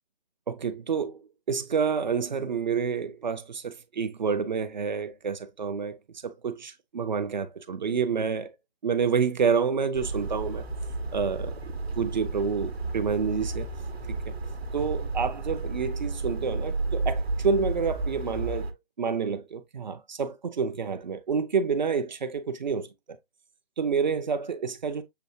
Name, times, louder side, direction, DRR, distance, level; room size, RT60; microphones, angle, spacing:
voice 1, 0.5-6.0 6.2-8.5 8.8-10.6 11.1-13.7 14.3-14.4 14.7-22.9 23.8-25.0, right 6 dB, 45° right, 0.6 m, -28 dB
sound 1, 9.9-18.7, right 3 dB, 80° right, 1.1 m, -32 dB
6.9 x 2.8 x 2.7 m
figure-of-eight pair, 155°, 31 cm